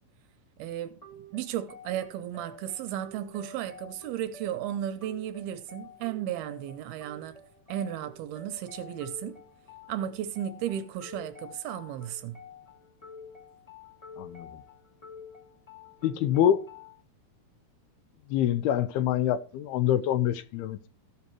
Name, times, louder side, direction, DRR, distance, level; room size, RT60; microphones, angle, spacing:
voice 1, 0.6-1.0 1.3-7.4 7.7-9.4 9.9-12.4, right 11 dB, 75° right, 2.5 m, -34 dB
sound 1, 1.0-17.0, left 3 dB, 10° left, 2.7 m, -49 dB
voice 2, 14.2-14.6 16.0-16.7 18.3-20.9, left 10 dB, 80° left, 2.5 m, -26 dB
16.0 x 5.7 x 4.5 m
omnidirectional pair, 4.8 m